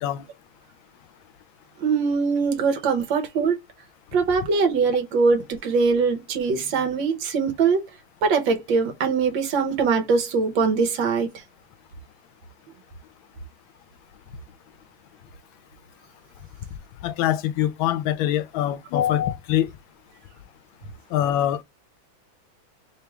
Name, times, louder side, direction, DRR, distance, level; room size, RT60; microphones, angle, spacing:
voice 1, 1.8-3.6 4.1-7.8 8.2-11.3, right 5 dB, 70° right, 1.5 m, -22 dB
voice 2, 17.0-19.7 21.1-21.6, left 11 dB, 85° left, 1.4 m, -24 dB
3.6 x 3.0 x 3.4 m
omnidirectional pair, 2.2 m